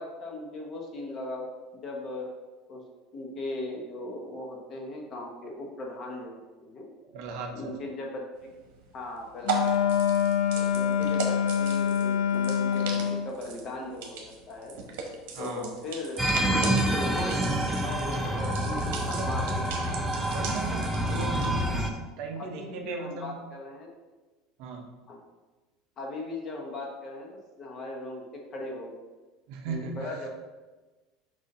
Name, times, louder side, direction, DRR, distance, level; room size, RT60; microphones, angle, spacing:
voice 1, 0.0-1.5 1.8-2.3 2.7-2.8 3.1-6.9 7.5-8.5 8.9-10.0 10.5-12.9 13.2-14.8 15.4-16.3 16.9-19.9 22.4-23.9 25.1-25.2 26.0-27.3 27.6-29.0 29.6-30.3, left 2 dB, 30° left, 0 dB, 1.0 m, -38 dB
voice 2, 7.1-7.7 15.3-15.7 19.1-19.3 20.3-23.4 24.6-24.9 29.5-30.2, right 4 dB, 55° right, 3 dB, 0.8 m, -37 dB
sound 1, 8.4-21.6, right 5 dB, 85° right, 1.1 m, -39 dB
Wind instrument woodwind instrument, 9.4-13.3, left 8 dB, 80° left, 0.5 m, -25 dB
sound 2, 16.2-21.9, right 1 dB, 5° right, 0.5 m, -27 dB
6.5 x 2.7 x 5.3 m, 1.2 s
cardioid pair, 170°, 0 cm